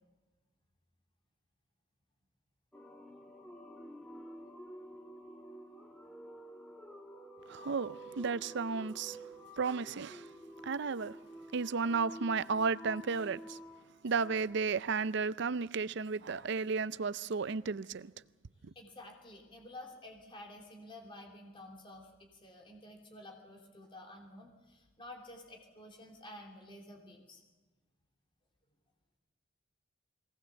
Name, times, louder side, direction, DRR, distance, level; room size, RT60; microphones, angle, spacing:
sound 1, 2.7-15.1, right 1 dB, 5° left, 1.7 m, -50 dB
voice 1, 7.5-9.2 9.6-10.2 10.6-11.2 11.5-13.6 14.0-18.1, right 5 dB, 60° right, 0.5 m, -33 dB
voice 2, 18.7-27.4, left 1 dB, 25° left, 3.0 m, -51 dB
22.5 x 18.0 x 7.1 m
head